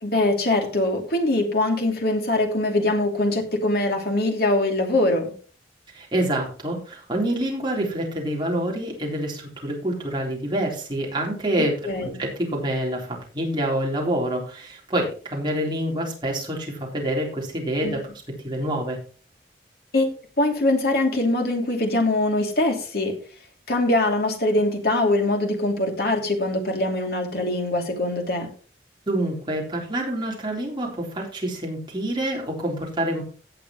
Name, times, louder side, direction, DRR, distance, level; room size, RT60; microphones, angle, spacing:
voice 1, 0.0-5.3 11.8-12.2 17.8-18.0 19.9-20.1 20.4-23.1 23.7-28.5, left 2 dB, 60° left, 3 dB, 2.8 m, -22 dB
voice 2, 5.9-18.0 18.4-19.0 29.1-33.2, right 1 dB, 25° right, -2 dB, 3.8 m, -27 dB
17.5 x 6.8 x 3.1 m, 0.39 s
head